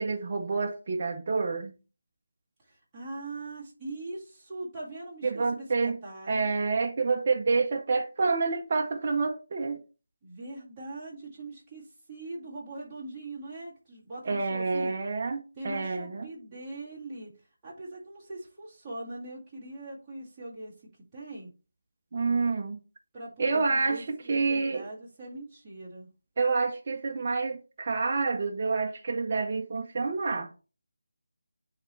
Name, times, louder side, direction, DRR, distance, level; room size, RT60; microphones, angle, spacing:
voice 1, 0.0-1.7 5.2-6.0 6.3-9.8 14.3-16.3 22.1-22.8 23.4-24.8 26.4-30.5, right 4 dB, 30° right, 0.6 m, -28 dB
voice 2, 2.6-6.5 10.2-14.9 15.6-17.3 17.6-20.7 21.1-21.5 23.1-26.1, right 2 dB, 10° right, 2.0 m, -41 dB
9.9 x 3.3 x 3.1 m
figure-of-eight pair, 175°, 0 cm